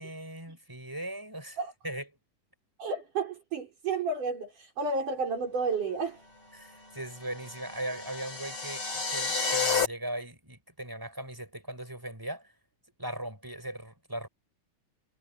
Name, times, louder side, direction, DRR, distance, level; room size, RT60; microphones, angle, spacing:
voice 1, 0.0-1.6 1.8-2.1 6.5-12.5 13.0-14.3, right 1 dB, 5° right, 5.6 m, -39 dB
voice 2, 2.8-6.2, right 4 dB, 75° right, 7.1 m, -31 dB
sound 1, 7.3-9.9, left 5 dB, 40° left, 6.9 m, -30 dB
omnidirectional pair, 3.7 m